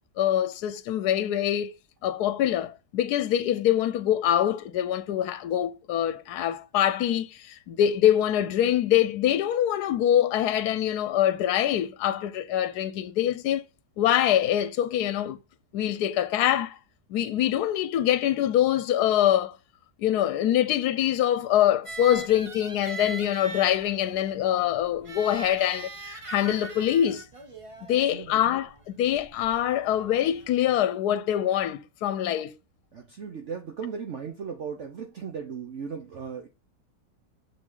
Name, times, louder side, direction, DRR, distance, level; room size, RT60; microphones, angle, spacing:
voice 1, 0.2-1.7 2.0-13.6 14.0-15.4 15.7-16.8 17.1-19.6 20.0-27.2 27.9-32.5, left 11 dB, 80° left, 1.2 m, -24 dB
sound 1, 21.9-30.5, right 3 dB, 25° right, 0.9 m, -42 dB
voice 2, 27.9-28.4 32.9-36.5, right 6 dB, 50° right, 1.2 m, -37 dB
6.6 x 6.1 x 3.8 m
omnidirectional pair, 1.7 m